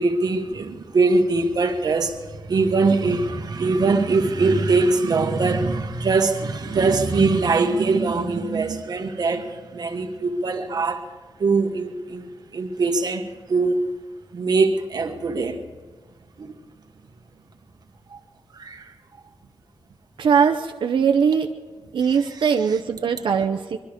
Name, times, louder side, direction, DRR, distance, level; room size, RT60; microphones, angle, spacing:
voice 1, 0.0-11.1 11.4-13.8 14.3-15.6 16.4-16.5 18.1-18.2 18.5-18.9 22.2-22.3, right 3 dB, 55° right, 1.3 m, -22 dB
voice 2, 20.2-21.5 21.9-23.8, right 6 dB, 90° right, 0.7 m, -20 dB
23.0 x 12.0 x 5.1 m
wide cardioid pair, 180°, 8 cm